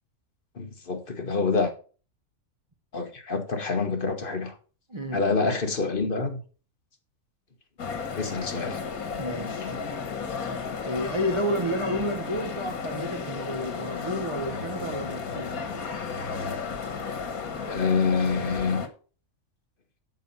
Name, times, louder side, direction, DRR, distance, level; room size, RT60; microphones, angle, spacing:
voice 1, 0.6-1.7 2.9-4.5 5.1-6.4 8.2-8.8 17.7-18.8, left 4 dB, 40° left, 1.5 m, -26 dB
voice 2, 4.9-5.3 9.1-9.7 10.8-15.6, equal, 25° right, 0.9 m, -31 dB
sound 1, 7.8-18.9, left 5 dB, 85° left, 1.8 m, -33 dB
12.0 x 4.6 x 5.5 m
omnidirectional pair, 1.5 m